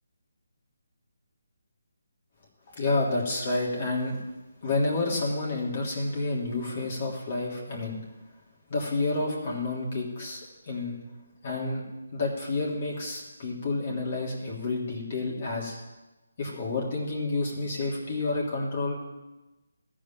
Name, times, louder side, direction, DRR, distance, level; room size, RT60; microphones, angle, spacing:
voice 1, 2.7-4.2 4.6-8.0 8.7-11.0 11.4-11.8 12.1-15.8 16.4-18.9, left 2 dB, 45° left, -3 dB, 3.2 m, -29 dB
14.0 x 5.1 x 9.1 m, 1.1 s
figure-of-eight pair, 160°, 0 cm